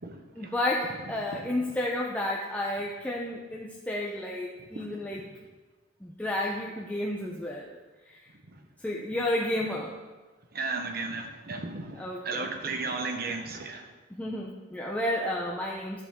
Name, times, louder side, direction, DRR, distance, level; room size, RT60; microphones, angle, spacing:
voice 1, 0.4-5.2 6.0-7.8 8.1-8.2 8.8-10.0 12.0-12.5 14.1-16.0, left 1 dB, 5° left, -3 dB, 0.6 m, -31 dB
voice 2, 4.7-5.3 8.5-8.6 10.5-13.9, right 3 dB, 50° right, 4 dB, 1.1 m, -35 dB
12.0 x 7.2 x 3.7 m, 1.3 s
head